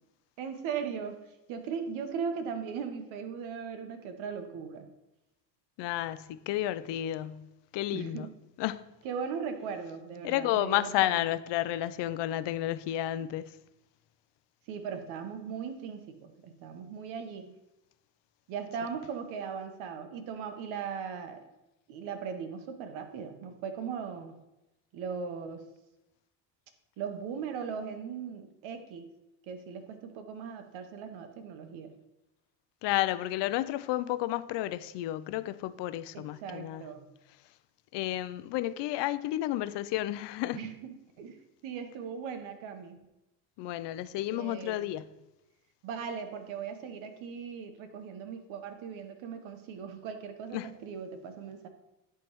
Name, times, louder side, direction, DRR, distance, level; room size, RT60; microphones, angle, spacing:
voice 1, 0.4-1.2 1.5-4.8 7.9-8.3 9.0-11.2 14.7-17.5 18.5-21.4 21.9-24.4 24.9-25.6 27.0-29.1 29.5-31.9 36.1-37.1 40.5-41.4 41.6-43.0 44.3-44.9 45.8-51.7, right 6 dB, 70° right, 1.2 m, -38 dB
voice 2, 5.8-7.5 7.7-8.3 8.6-8.8 10.2-13.5 32.8-36.8 37.9-40.6 43.6-45.1 50.5-50.7, left 14 dB, 60° left, 0.5 m, -31 dB
10.5 x 3.5 x 3.0 m
supercardioid pair, 85°, 49 cm